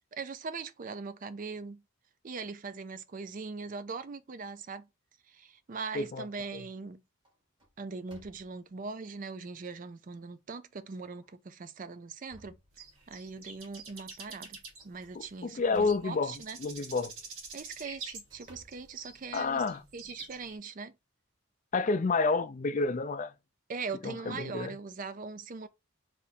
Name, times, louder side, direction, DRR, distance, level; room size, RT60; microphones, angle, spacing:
voice 1, 0.1-1.8 2.2-4.9 5.3-7.0 7.8-12.6 13.1-14.6 14.8-16.6 17.5-19.6 19.9-20.9 23.7-25.7, right 4 dB, 40° right, 0.4 m, -41 dB
sound 1, 5.6-6.2 6.7-6.9 7.2-8.8 9.5-9.6 10.1-10.2 11.1-11.3 11.8-13.2 14.8-16.2 17.4-19.6, right 1 dB, 20° right, 1.7 m, -59 dB
sound 2, 12.7-20.6, right 4 dB, 80° right, 1.4 m, -46 dB
voice 2, 15.1-16.3 16.6-17.1 19.3-19.8 21.7-23.3 24.0-24.7, left 4 dB, 35° left, 0.4 m, -29 dB
3.5 x 2.8 x 4.1 m
head